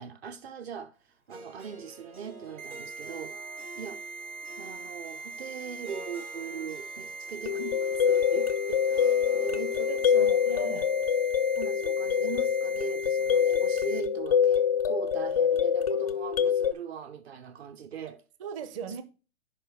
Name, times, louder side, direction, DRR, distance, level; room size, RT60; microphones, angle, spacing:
voice 1, 0.0-4.0 4.6-10.7 11.6-18.2 18.9-19.0, right 7 dB, 45° right, 0.9 m, -41 dB
Harp, 1.3-13.4, right 3 dB, 90° right, 2.2 m, -49 dB
sound 1, 2.6-14.0, right 4 dB, 60° right, 1.5 m, -41 dB
sound 2, 7.5-16.7, left 7 dB, 30° left, 0.3 m, -25 dB
voice 2, 9.7-10.9 18.4-19.0, right 7 dB, 20° right, 0.7 m, -39 dB
9.8 x 5.4 x 3.4 m
figure-of-eight pair, 130°, 43 cm